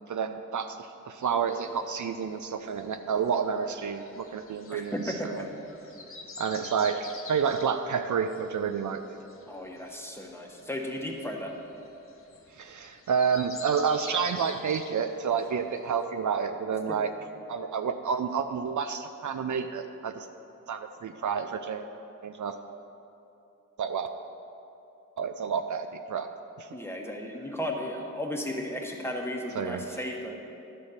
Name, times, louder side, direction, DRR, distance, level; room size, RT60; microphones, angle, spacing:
voice 1, 0.1-5.5 6.4-9.0 12.6-17.1 17.5-20.3 20.7-21.9 22.2-22.6 23.8-24.1 25.2-26.3 26.6-26.7 29.6-29.8, right 6 dB, 65° right, 8 dB, 0.5 m, -29 dB
sound 1, 1.3-16.0, left 3 dB, 40° left, 1.0 m, -48 dB
voice 2, 4.7-5.5 9.5-11.5 15.5-15.6 16.9-17.0 26.7-30.3, left 1 dB, 5° left, 0 dB, 1.2 m, -35 dB
11.0 x 4.2 x 6.5 m, 2.8 s
cardioid pair, 65°, 33 cm